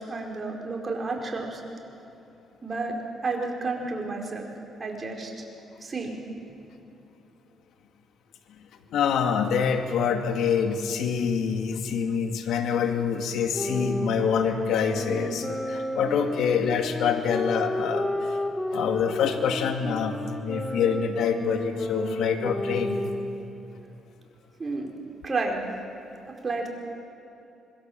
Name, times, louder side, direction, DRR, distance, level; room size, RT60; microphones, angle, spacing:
voice 1, 0.0-1.6 2.6-3.0 3.2-4.5 4.8-5.3 5.8-6.2 24.6-24.9 25.2-25.6 26.4-26.7, right 3 dB, 35° right, 1 dB, 4.9 m, -31 dB
voice 2, 8.9-18.4 18.7-23.0, left 6 dB, 80° left, 5 dB, 2.0 m, -26 dB
sound 1, 13.5-23.5, left 1 dB, 5° left, 2.7 m, -32 dB
26.0 x 21.5 x 7.6 m, 2.9 s
cardioid pair, 90°, 0 cm